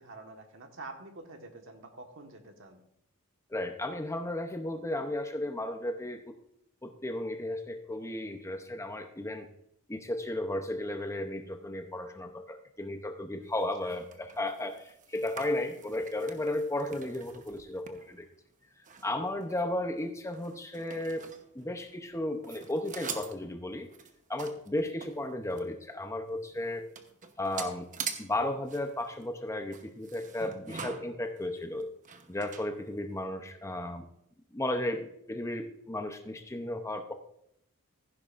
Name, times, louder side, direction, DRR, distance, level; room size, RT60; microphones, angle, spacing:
voice 1, 0.0-2.8 13.8-14.0, right 2 dB, 60° right, 4 dB, 1.5 m, -47 dB
voice 2, 3.5-6.3 6.8-9.5 9.9-18.3 19.0-21.3 21.5-23.9 24.3-26.9 27.4-27.9 28.2-31.9 32.3-34.1 34.5-37.1, left 1 dB, 15° left, 6 dB, 0.7 m, -34 dB
sound 1, 13.6-22.2 22.4-25.8 26.2-26.3 26.5-33.2, right 6 dB, 35° right, 0.9 m, -45 dB
15.0 x 10.5 x 2.5 m, 0.74 s
head